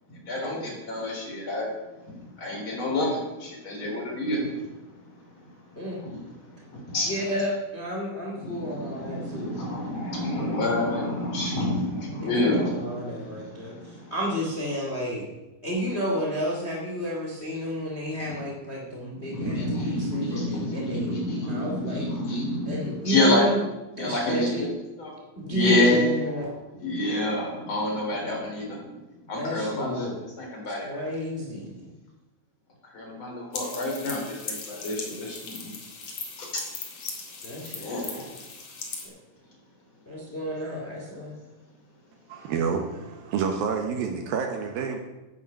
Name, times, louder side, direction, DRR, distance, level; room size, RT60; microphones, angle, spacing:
voice 1, 0.1-1.7 2.0-7.1 8.4-14.1 19.1-23.4 24.0-24.7 25.0-25.1 25.4-26.3 26.8-28.9 29.3-30.1 30.4-31.0 32.9-35.7 36.4-36.5 37.8-38.3, left 1 dB, 30° left, -1 dB, 3.8 m, -29 dB
voice 2, 7.0-9.6 9.8-9.9 10.3-10.6 12.2-15.3 15.6-22.1 22.6-23.6 24.0-24.7 25.4-26.5 29.4-30.1 30.8-31.9 37.4-38.2 39.0-39.1 40.0-41.3, equal, 75° left, -2 dB, 0.6 m, -31 dB
sound 1, 33.5-39.1, left 4 dB, 50° left, 1.8 m, -38 dB
voice 3, 42.3-45.0, right 6 dB, 75° right, 3 dB, 2.2 m, -28 dB
10.5 x 9.6 x 7.0 m, 1.0 s
omnidirectional pair, 5.7 m